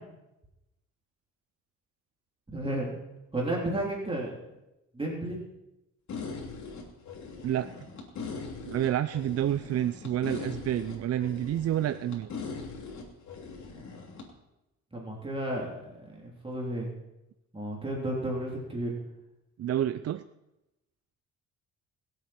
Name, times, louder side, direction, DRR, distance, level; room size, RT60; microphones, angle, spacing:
voice 1, 2.5-2.9 3.3-4.4 4.9-5.4 14.9-16.9 17.5-18.9, right 1 dB, 20° right, -2 dB, 3.2 m, -32 dB
sound 1, 6.1-14.3, left 4 dB, 65° left, 3.1 m, -40 dB
voice 2, 8.7-12.3 19.6-20.2, right 11 dB, 55° right, 12 dB, 0.5 m, -29 dB
23.0 x 8.1 x 4.3 m, 0.93 s
cardioid pair, 90°, 30 cm